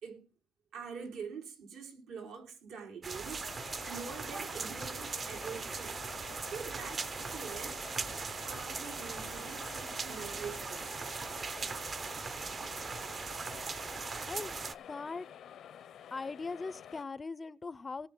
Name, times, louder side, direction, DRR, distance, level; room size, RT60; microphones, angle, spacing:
voice 1, 0.7-6.0 6.5-11.2, right 6 dB, 90° right, 4.8 m, -45 dB
sound 1, 3.0-14.7, right 4 dB, 40° right, 0.7 m, -39 dB
sound 2, 3.2-17.0, left 9 dB, 70° left, 0.8 m, -50 dB
voice 2, 14.9-15.3 16.1-18.1, left 4 dB, 30° left, 0.5 m, -40 dB
19.0 x 6.7 x 3.8 m
cardioid pair, 95°, 0 cm